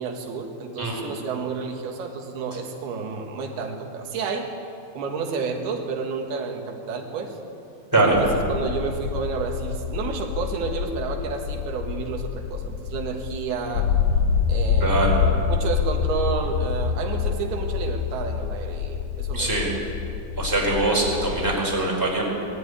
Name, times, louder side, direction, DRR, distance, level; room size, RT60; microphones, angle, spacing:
voice 1, 0.0-4.5 5.0-7.4 8.0-13.9 14.5-19.6, right 5 dB, 85° right, 2 dB, 3.6 m, -30 dB
sound 1, 8.1-21.5, left 7 dB, 70° left, 2.4 m, -27 dB
voice 2, 14.8-15.2 19.3-19.7 20.4-22.2, right 2 dB, 5° right, -3 dB, 4.2 m, -22 dB
20.0 x 13.5 x 9.7 m, 2.6 s
omnidirectional pair, 4.3 m